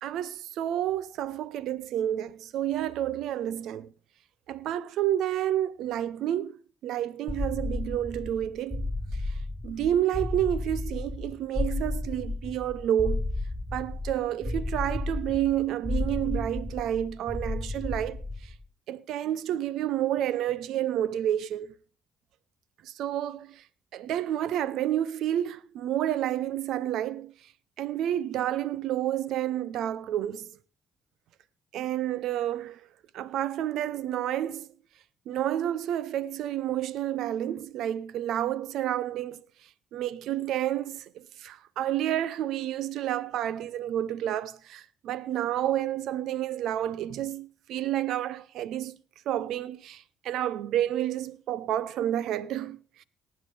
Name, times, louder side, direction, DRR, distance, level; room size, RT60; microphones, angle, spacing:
voice 1, 0.0-3.9 4.5-8.9 9.3-9.4 9.6-13.3 13.7-18.5 18.9-21.7 22.8-23.6 23.9-27.3 27.8-30.6 31.7-32.9 33.1-34.7 35.3-39.4 39.9-49.0 49.3-53.0, right 11 dB, 75° right, 0.7 m, -30 dB
sound 1, 7.3-18.6, left 2 dB, 10° left, 1.4 m, -33 dB
19.0 x 8.8 x 3.4 m
hypercardioid pair, 55°, 0 cm